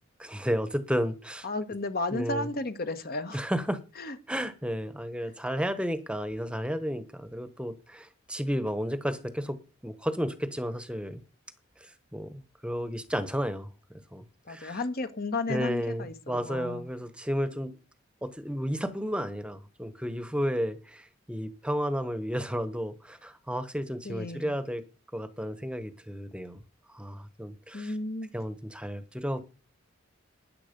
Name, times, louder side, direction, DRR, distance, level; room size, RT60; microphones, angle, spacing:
voice 1, 0.2-1.5 2.1-2.5 3.3-3.8 4.3-9.6 9.8-11.2 11.8-13.7 14.1-14.8 15.5-17.7 18.2-24.8 25.1-26.6 26.9-27.9 28.3-29.4, equal, 5° right, 1.1 m, -32 dB
voice 2, 1.4-3.4 3.9-4.2 5.2-5.3 14.4-16.9 24.0-24.6 27.7-28.3, left 2 dB, 50° left, 1.4 m, -33 dB
13.5 x 9.9 x 5.3 m
head